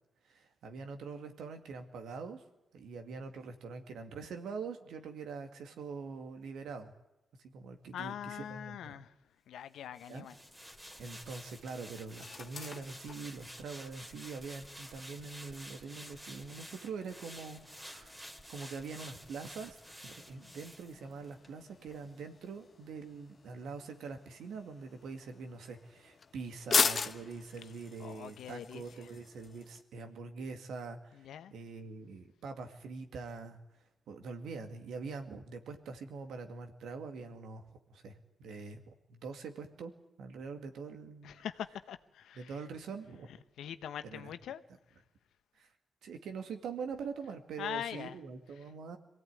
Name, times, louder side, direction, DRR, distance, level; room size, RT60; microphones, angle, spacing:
voice 1, 0.2-2.4 2.7-6.9 7.5-9.0 10.1-10.3 11.0-18.1 18.5-19.8 20.0-33.6 34.1-39.9 40.2-41.3 42.4-43.3 44.0-44.3 45.6-45.7 46.0-49.0, right 4 dB, 75° right, 2.2 m, -44 dB
voice 2, 7.9-10.4 27.6-27.7 28.0-29.1 31.1-31.5 41.2-42.6 43.3-44.6 44.9-45.0 47.6-48.2 48.6-48.7, left 10 dB, 80° left, 1.0 m, -43 dB
sound 1, 10.0-21.5 21.9-22.0, equal, 10° right, 2.6 m, -51 dB
sound 2, 10.2-29.8, left 5 dB, 50° left, 1.2 m, -41 dB
23.5 x 16.5 x 9.7 m
supercardioid pair, 55°, 0 cm